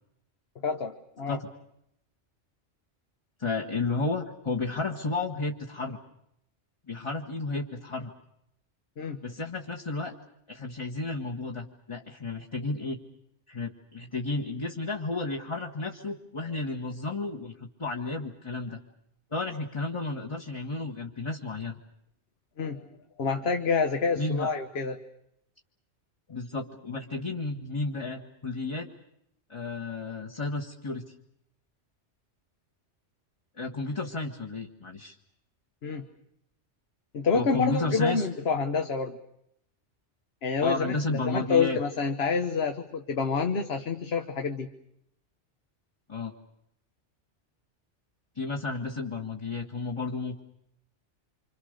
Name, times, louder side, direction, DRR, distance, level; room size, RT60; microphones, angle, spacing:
voice 1, 0.6-1.4 9.0-9.2 22.6-22.9 23.2-25.0 35.8-36.0 37.1-39.2 40.4-44.7, left 5 dB, 60° left, 6 dB, 1.4 m, -28 dB
voice 2, 3.4-6.0 6.9-8.1 9.2-10.2 10.5-13.0 13.5-18.8 19.3-21.7 24.2-24.5 26.3-28.9 29.5-31.0 33.6-35.1 37.3-38.3 40.6-41.8 46.1-46.3 48.3-50.4, left 3 dB, 25° left, 1 dB, 1.5 m, -32 dB
27.5 x 26.0 x 6.6 m, 0.77 s
omnidirectional pair, 1.2 m